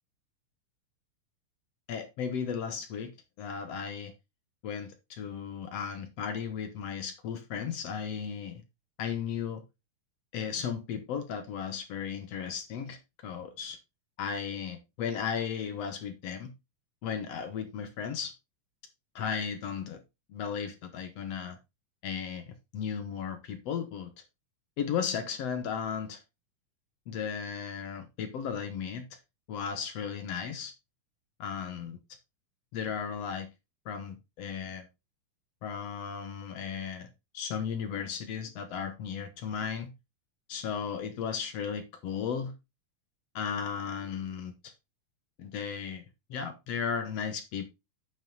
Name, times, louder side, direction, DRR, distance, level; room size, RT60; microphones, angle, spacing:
voice 1, 1.9-3.1 3.4-4.1 4.6-8.6 9.0-9.6 10.3-13.8 14.2-16.5 17.0-18.3 19.2-20.0 20.3-21.6 22.0-24.1 24.8-26.2 27.1-29.2 29.5-30.7 31.4-32.0 32.7-33.5 33.9-34.9 35.6-37.1 37.3-39.9 40.5-42.5 43.4-44.7 45.4-46.0 46.3-47.6, left 7 dB, 60° left, 1.8 m, -35 dB
9.2 x 5.7 x 3.9 m
omnidirectional pair, 3.8 m